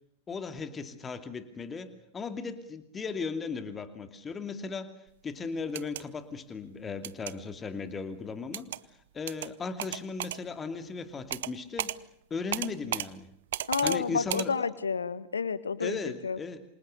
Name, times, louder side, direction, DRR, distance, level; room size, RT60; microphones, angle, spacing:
voice 1, 0.3-4.9 5.2-8.7 9.1-12.0 12.3-13.3 13.8-14.7 15.8-16.7, left 4 dB, 20° left, 9 dB, 2.6 m, -37 dB
sound 1, 5.6-6.0 7.0-7.3 8.5-8.8 9.3-9.5 9.8-10.4 11.3-11.5 11.8-12.0 12.5-13.1 13.5-14.0 14.3-14.5, right 13 dB, 60° right, 1.0 m, -33 dB
voice 2, 13.7-16.0 16.2-16.4, left 5 dB, 75° left, 16 dB, 1.6 m, -30 dB
28.5 x 26.5 x 6.7 m, 0.72 s
figure-of-eight pair, 90°, 0 cm